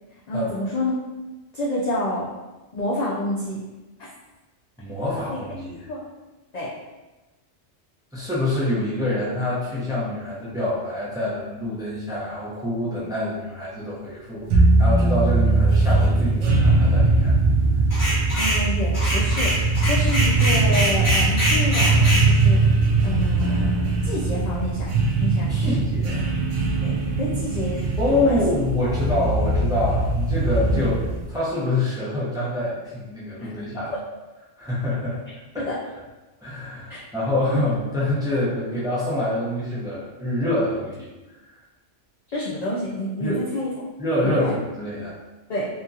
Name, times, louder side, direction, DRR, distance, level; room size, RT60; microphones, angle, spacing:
voice 1, 0.3-0.9 1.5-2.3 2.7-3.6 4.0-4.1 5.3-5.4 5.9-6.0 6.5-6.8 18.4-22.8 23.0-24.9 25.2-25.7 26.8-28.4 30.7-30.8 33.4-33.5 35.6-35.8 36.9-37.0 42.3-43.7 44.2-44.5 45.5-45.7, left 1 dB, 60° left, -6 dB, 0.4 m, -28 dB
voice 2, 4.8-5.9 8.1-17.4 25.5-26.3 28.0-33.9 34.6-35.2 35.5-35.6 36.4-41.0 43.2-43.4 44.0-45.2, left 1 dB, 5° right, -8 dB, 0.5 m, -26 dB
sound 1, 14.5-31.3, right 2 dB, 90° right, 0.9 m, -20 dB
sound 2, 17.9-18.6 18.9-22.3, right 1 dB, 15° left, 1.0 m, -24 dB
2.8 x 2.6 x 2.4 m, 1.1 s
omnidirectional pair, 1.2 m